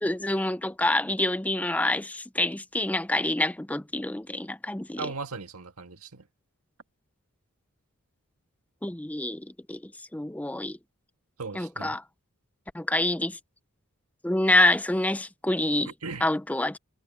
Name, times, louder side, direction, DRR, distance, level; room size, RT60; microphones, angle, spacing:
voice 1, 0.0-5.1 8.8-10.8 11.5-12.0 12.7-13.4 14.2-15.9 16.2-16.8, left 1 dB, 5° left, 0.5 m, -27 dB
voice 2, 5.0-6.3 11.4-12.0 15.9-16.3, right 4 dB, 80° right, 1.8 m, -37 dB
head